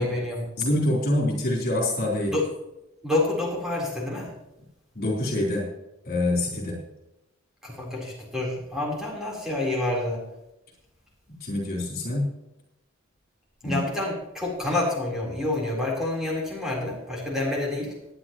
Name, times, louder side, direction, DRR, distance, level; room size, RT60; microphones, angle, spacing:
voice 1, 0.0-0.4 2.3-2.4 3.0-4.3 7.6-10.2 13.6-17.9, left 2 dB, ahead, -4 dB, 3.9 m, -28 dB
voice 2, 0.6-2.3 4.9-5.7 6.0-6.8 11.3-12.3 13.6-13.8, left 1 dB, 50° left, -2 dB, 4.0 m, -25 dB
19.0 x 10.0 x 3.1 m, 0.89 s
head